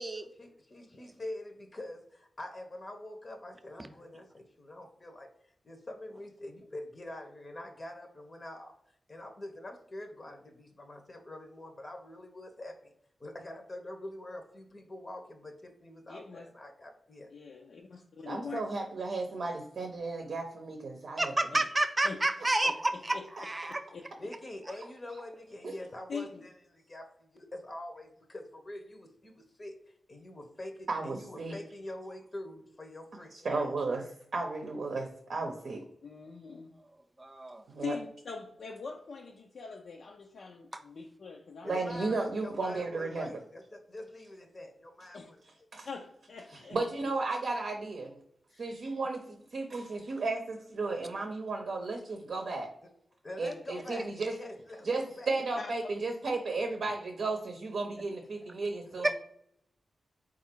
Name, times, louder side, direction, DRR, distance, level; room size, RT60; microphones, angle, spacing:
voice 1, 0.4-5.3 5.6-8.8 9.1-12.9 13.2-17.3 24.2-33.3 41.6-45.4 53.2-55.3, left 1 dB, 35° left, 4 dB, 0.7 m, -45 dB
voice 2, 16.1-16.5 17.3-18.6 21.5-21.7 22.0-22.2 22.7-22.8 23.1-23.2 23.9-24.3 26.1-26.4 33.5-33.7 36.0-36.7 37.8-41.9 45.1-45.3 45.9-46.8 48.5-48.7 55.6-55.7, left 5 dB, 75° left, 0 dB, 0.4 m, -42 dB
voice 3, 18.3-21.3 25.6-25.7 30.9-31.6 33.3-34.1 34.3-35.9 37.7-37.9 41.6-43.3 45.7-45.9 46.5-48.2 48.6-52.7 53.4-54.3 54.8-59.1, right 3 dB, 70° right, 3 dB, 0.6 m, -34 dB
voice 4, 21.2-23.8 37.2-37.6 40.7-40.8 59.0-59.1, right 2 dB, 25° right, 8 dB, 0.5 m, -30 dB
4.1 x 2.4 x 4.4 m, 0.71 s
wide cardioid pair, 85°, 0 cm